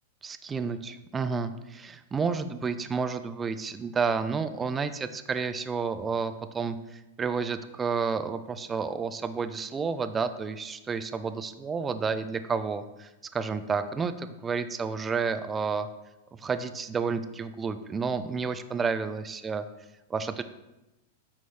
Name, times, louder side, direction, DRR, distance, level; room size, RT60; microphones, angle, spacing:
voice 1, 0.2-15.9 16.3-19.6 20.1-20.4, right 5 dB, 20° right, 11 dB, 0.6 m, -31 dB
9.4 x 6.0 x 3.3 m, 0.98 s
hypercardioid pair, 115°, 0 cm